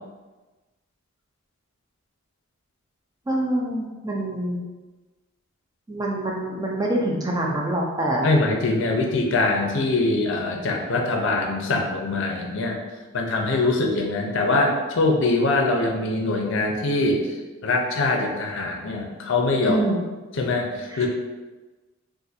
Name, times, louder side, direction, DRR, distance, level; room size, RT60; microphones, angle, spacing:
voice 1, 3.3-4.6 5.9-8.3 19.6-20.0 20.9-21.1, right 1 dB, 15° right, -1 dB, 0.3 m, -25 dB
voice 2, 8.2-12.8 13.1-17.2 17.6-19.8 20.3-21.1, left 2 dB, 60° left, 1 dB, 0.5 m, -23 dB
2.5 x 2.5 x 4.0 m, 1.2 s
head